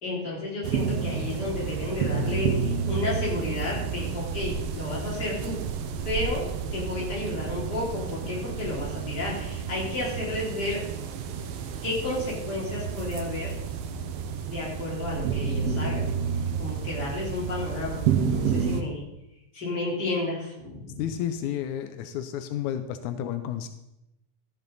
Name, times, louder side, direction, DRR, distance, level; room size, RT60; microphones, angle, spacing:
voice 1, 0.0-5.6 6.0-10.8 11.8-13.6 14.5-16.1 16.6-19.1 19.5-21.1, left 2 dB, 35° left, -5 dB, 3.9 m, -32 dB
sound 1, 0.6-18.8, right 6 dB, 70° right, 1.5 m, -30 dB
voice 2, 21.0-23.7, left 10 dB, 85° left, 9 dB, 2.1 m, -31 dB
13.0 x 8.8 x 4.1 m, 0.89 s
omnidirectional pair, 3.4 m